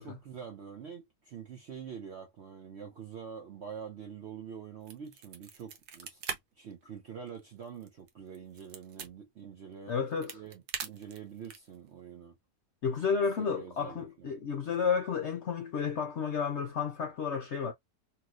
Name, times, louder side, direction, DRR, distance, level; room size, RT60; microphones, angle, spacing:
voice 1, 0.0-9.9 10.3-12.4 13.1-14.3, right 7 dB, 65° right, 0.7 m, -46 dB
sound 1, 4.8-6.4 6.7-6.8 7.3-9.1 9.9-11.8, right 7 dB, 85° right, 1.4 m, -41 dB
voice 2, 9.9-10.4 12.8-17.7, left 6 dB, 65° left, 0.7 m, -31 dB
3.0 x 2.8 x 2.4 m
omnidirectional pair, 1.8 m